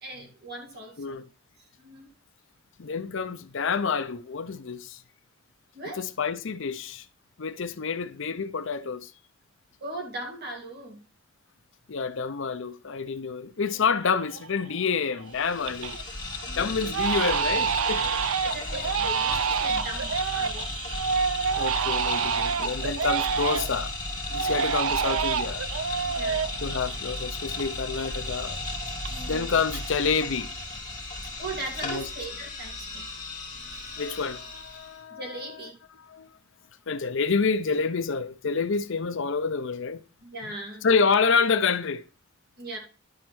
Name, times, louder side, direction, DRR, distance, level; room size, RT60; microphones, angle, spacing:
voice 1, 0.0-1.2 1.6-2.1 5.7-6.0 9.8-11.0 16.4-16.9 18.4-20.7 26.1-26.5 29.1-29.5 31.4-33.1 35.1-35.8 40.2-40.9 42.6-42.8, right 2 dB, 50° right, 2.9 m, -39 dB
voice 2, 2.8-5.0 6.0-7.1 7.4-9.1 11.9-16.0 16.4-19.2 19.5-20.1 21.6-23.9 24.3-25.6 26.6-28.6 29.3-30.5 31.8-32.1 34.0-35.4 36.0-36.3 36.9-40.0 40.8-42.0, left 5 dB, 65° left, 0.6 m, -28 dB
Crying sobbing, 13.8-13.9 14.3-14.8 15.2-16.0 16.3-16.5 16.9-23.9 24.3-27.7 27.9-29.4 29.7-30.3, right 6 dB, 85° right, 0.5 m, -28 dB
sound 1, 15.3-35.0, left 2 dB, 20° left, 2.3 m, -35 dB
11.0 x 4.4 x 6.1 m
head